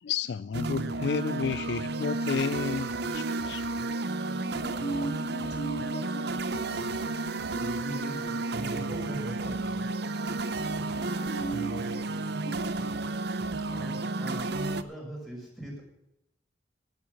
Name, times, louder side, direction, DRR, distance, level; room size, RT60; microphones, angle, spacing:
voice 1, 0.0-3.7, left 6 dB, 70° left, 0.4 m, -31 dB
sound 1, 0.5-14.8, right 2 dB, 65° right, 0.8 m, -32 dB
voice 2, 4.3-7.1 10.5-13.1, right 2 dB, 40° left, 3.0 m, -39 dB
voice 3, 7.4-9.9 13.7-15.8, right 1 dB, ahead, 5.5 m, -40 dB
12.0 x 9.6 x 7.3 m
head